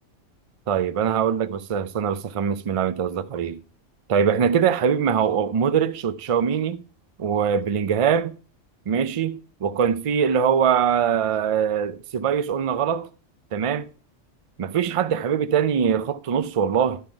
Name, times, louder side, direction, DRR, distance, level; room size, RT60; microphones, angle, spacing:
voice 1, 0.7-3.6 4.1-6.8 7.2-8.4 8.9-13.1 13.5-13.9 14.6-17.0, right 7 dB, 65° right, 0.3 m, -22 dB
11.0 x 5.7 x 4.5 m
omnidirectional pair, 1.3 m